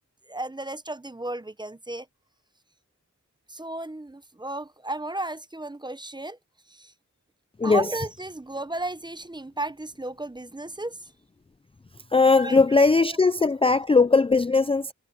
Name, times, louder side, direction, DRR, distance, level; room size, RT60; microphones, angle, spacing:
voice 1, 0.3-2.1 3.5-6.4 6.7-6.9 7.6-11.0 12.3-12.6 13.4-13.5, right 2 dB, 15° right, 0.8 m, -34 dB
voice 2, 12.1-14.9, left 4 dB, 20° left, 0.4 m, -19 dB
wide cardioid pair, 80°, 31 cm